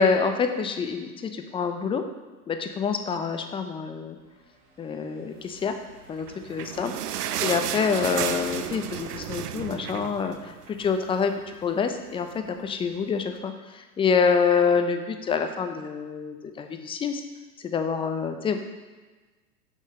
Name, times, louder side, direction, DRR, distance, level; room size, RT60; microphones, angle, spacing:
voice 1, 0.0-2.0 2.5-4.2 4.8-5.7 6.1-6.9 7.4-17.2 17.6-18.6, left 5 dB, 10° left, 7 dB, 0.5 m, -26 dB
Motorcycle / Engine, 4.2-13.4, right 2 dB, 25° right, 2.4 m, -47 dB
sound 1, 6.1-10.9 11.2-11.3 11.6-11.8 12.5-12.6, right 10 dB, 70° right, 0.6 m, -33 dB
6.9 x 6.4 x 5.4 m, 1.3 s
figure-of-eight pair, 90°, 47 cm